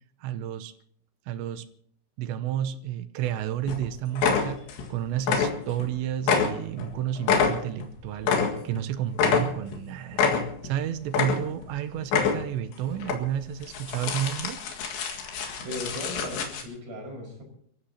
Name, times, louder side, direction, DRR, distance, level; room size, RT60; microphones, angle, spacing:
voice 1, 0.2-0.7 1.3-1.7 2.2-4.6 4.9-8.3 8.6-14.6, right 10 dB, 80° right, 9 dB, 3.1 m, -31 dB
sound 1, 3.2-3.4 3.7-3.8 4.2-4.9 5.2-5.9 6.2-8.8 9.2-9.8 10.1-10.7 11.1-11.7 12.0-12.6 13.0-13.2 13.6-16.6, left 6 dB, 75° left, 4.1 m, -26 dB
voice 2, 15.6-17.4, left 1 dB, 50° right, 0 dB, 6.7 m, -37 dB
29.5 x 14.5 x 2.9 m, 0.64 s
omnidirectional pair, 5.2 m